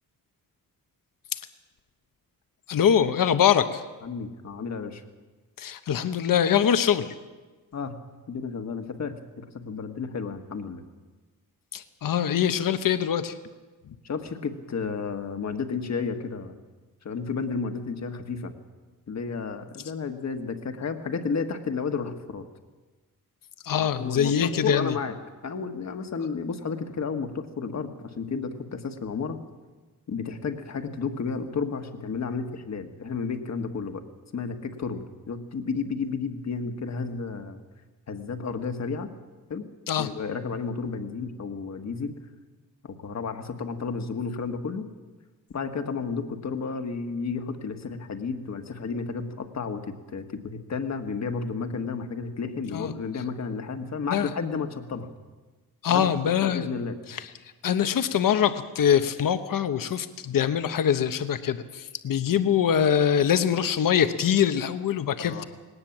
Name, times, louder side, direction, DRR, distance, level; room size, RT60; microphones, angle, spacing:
voice 1, 2.7-3.8 5.6-7.1 11.7-13.3 23.6-24.9 39.9-40.1 52.7-52.9 54.1-54.3 55.8-56.7 57.1-57.2 57.6-65.4, left 8 dB, 70° left, 9 dB, 1.0 m, -23 dB
voice 2, 4.0-5.0 7.7-7.9 8.3-10.8 14.0-16.5 17.0-18.5 19.1-22.4 23.7-25.2 25.4-29.4 30.1-34.0 34.3-37.6 38.1-39.1 39.5-39.7 40.0-42.1 42.8-44.9 45.5-55.1 55.9-57.0 65.2-65.4, left 5 dB, 50° left, 7 dB, 1.7 m, -32 dB
19.5 x 18.5 x 7.4 m, 1.3 s
wide cardioid pair, 165°, 35 cm